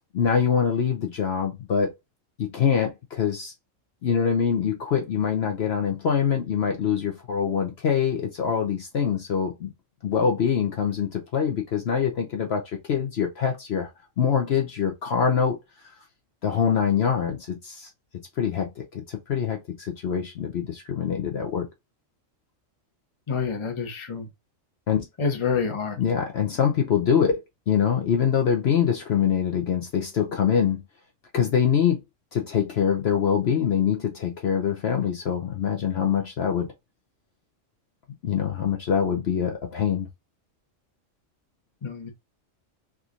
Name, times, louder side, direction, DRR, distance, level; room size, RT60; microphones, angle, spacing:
voice 1, 0.1-1.9 2.4-3.5 4.0-9.7 10.0-13.9 14.2-15.6 16.4-17.9 18.4-21.7 24.9-25.0 26.0-30.8 31.3-32.0 32.3-36.7 38.2-40.1, left 7 dB, 60° left, 0.8 m, -24 dB
voice 2, 23.3-24.3 25.2-26.0 41.8-42.1, left 5 dB, 25° left, 0.8 m, -27 dB
3.6 x 2.9 x 2.4 m
omnidirectional pair, 1.4 m